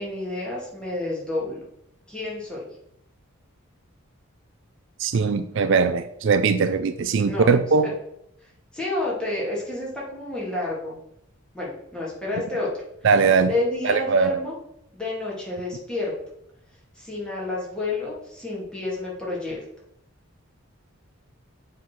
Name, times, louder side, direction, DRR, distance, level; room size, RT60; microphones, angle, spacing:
voice 1, 0.0-1.6 2.1-2.6 7.2-7.5 7.8-7.9 8.4-11.0 11.5-12.7 13.5-14.5 14.9-16.1 16.9-19.6, left 2 dB, 5° left, -6 dB, 2.4 m, -30 dB
voice 2, 5.0-7.9 13.0-13.5 13.8-14.4, right 5 dB, 60° right, 10 dB, 0.4 m, -20 dB
7.4 x 4.0 x 5.9 m, 0.76 s
head